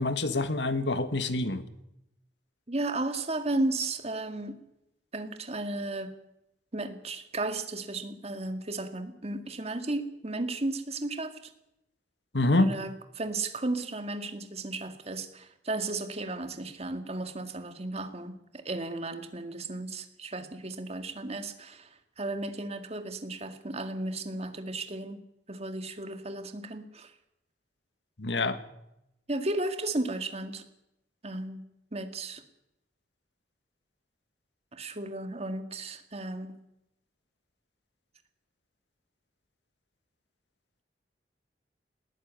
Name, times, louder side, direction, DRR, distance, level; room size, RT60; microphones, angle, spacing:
voice 1, 0.0-1.6 12.3-12.7 28.2-28.6, left 2 dB, 90° left, 11 dB, 1.6 m, -26 dB
voice 2, 2.7-4.6 5.1-6.1 6.7-11.5 12.5-27.1 29.3-30.6 31.2-31.6 31.9-32.4 34.7-36.6, right 2 dB, 35° right, 8 dB, 2.0 m, -34 dB
19.5 x 14.0 x 9.6 m, 0.84 s
head